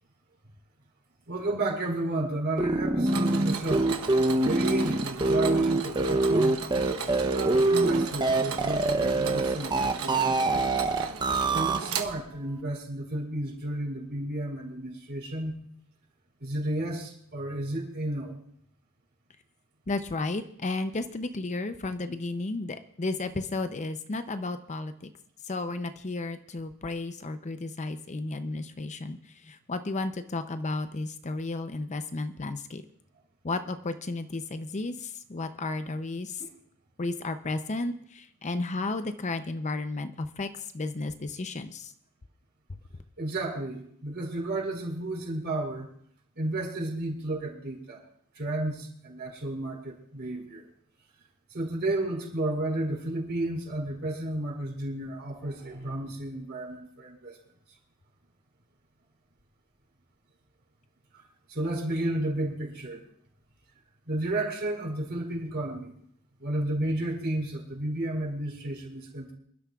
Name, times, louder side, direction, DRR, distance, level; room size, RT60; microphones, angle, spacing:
voice 1, 1.3-4.0 4.3-6.6 7.2-10.7 11.5-15.5 16.4-18.4 36.4-36.5 43.2-45.9 46.4-48.0 48.3-50.6 51.5-57.4 61.5-63.0 64.1-65.9 66.4-69.3, right 1 dB, 50° right, 0 dB, 4.8 m, -32 dB
sound 1, 2.6-11.8, right 2 dB, 20° right, 0.7 m, -24 dB
Mechanisms, 3.1-12.6, right 5 dB, 75° right, 1.0 m, -36 dB
voice 2, 19.9-25.1 25.5-29.2 29.4-32.8 33.4-36.4 37.0-40.5 40.7-41.9, left 2 dB, 35° left, 9 dB, 0.6 m, -33 dB
27.5 x 12.0 x 2.4 m, 0.64 s
head